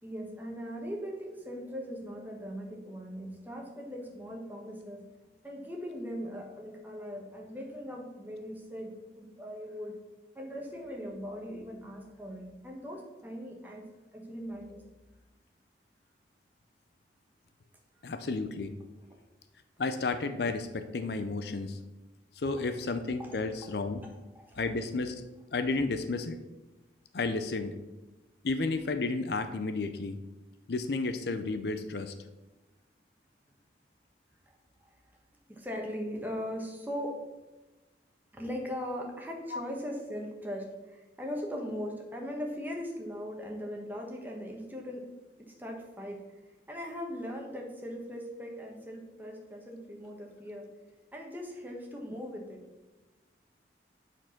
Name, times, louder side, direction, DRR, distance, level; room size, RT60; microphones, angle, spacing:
voice 1, 0.0-5.0 5.4-10.0 10.3-13.9 14.1-14.8 22.4-22.7 23.2-23.4 24.0-24.6 34.8-34.9 35.5-37.2 38.3-45.0 45.5-46.4 46.7-50.7 51.1-52.6, equal, 10° right, 0 dB, 1.3 m, -39 dB
voice 2, 18.0-18.7 19.8-21.8 22.4-24.0 24.6-25.2 25.5-26.4 27.1-27.7 28.4-30.2 30.7-32.1 39.5-39.6, left 3 dB, 65° left, 9 dB, 0.5 m, -32 dB
8.9 x 4.6 x 5.9 m, 1.1 s
head